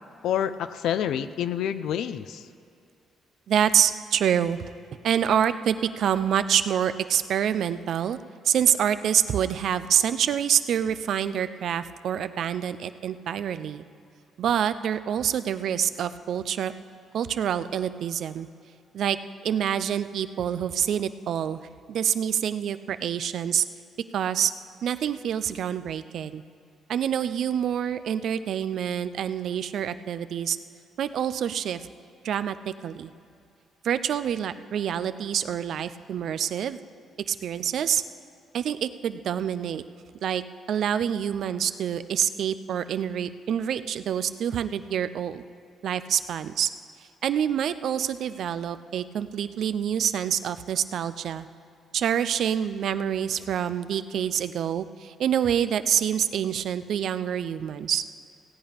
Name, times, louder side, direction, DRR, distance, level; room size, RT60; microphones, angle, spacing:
voice 1, 0.2-2.5, left 9 dB, 80° left, 12 dB, 0.5 m, -28 dB
voice 2, 3.5-4.6 5.0-8.2 8.4-13.8 14.4-16.7 17.1-18.5 18.9-19.2 19.4-21.6 21.9-23.6 24.1-24.5 24.8-26.4 26.9-30.6 31.0-31.9 32.2-33.1 33.8-36.8 37.3-38.0 38.5-39.8 40.2-40.4 40.7-45.4 45.8-46.7 47.2-51.5 51.9-58.0, right 9 dB, 70° right, 13 dB, 0.5 m, -26 dB
16.5 x 8.6 x 5.1 m, 2.5 s
cardioid pair, 90°, 0 cm